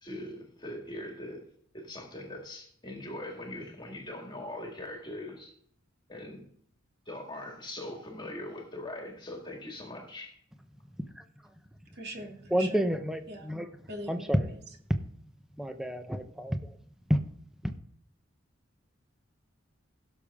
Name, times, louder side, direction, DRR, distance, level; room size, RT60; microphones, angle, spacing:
voice 1, 0.0-1.5 1.7-5.5 6.1-6.5 7.1-10.3, left 1 dB, 25° left, 2 dB, 1.9 m, -41 dB
voice 2, 12.0-12.8 13.3-13.5 13.9-14.5, right 1 dB, 55° right, 1 dB, 2.5 m, -41 dB
voice 3, 12.5-13.7 14.1-14.5 15.6-16.8 17.1-17.2 17.6-17.7, equal, ahead, 7 dB, 0.9 m, -29 dB
16.5 x 6.9 x 3.6 m, 0.64 s
head